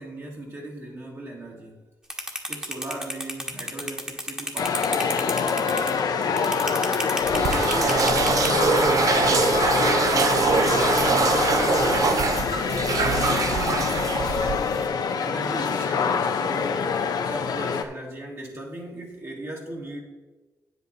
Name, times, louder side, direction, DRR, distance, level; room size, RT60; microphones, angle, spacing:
voice 1, 0.0-1.8 2.5-9.7 10.0-11.3 12.8-14.3 15.2-20.0, right 1 dB, 40° right, -1 dB, 1.7 m, -38 dB
sound 1, 2.1-8.5, equal, 10° right, 1.4 m, -30 dB
sound 2, 4.6-17.8, left 6 dB, 70° left, 0.8 m, -25 dB
sound 3, 7.2-14.9, right 4 dB, 55° right, 0.9 m, -23 dB
9.3 x 8.0 x 4.1 m, 1.2 s
wide cardioid pair, 120°, 7 cm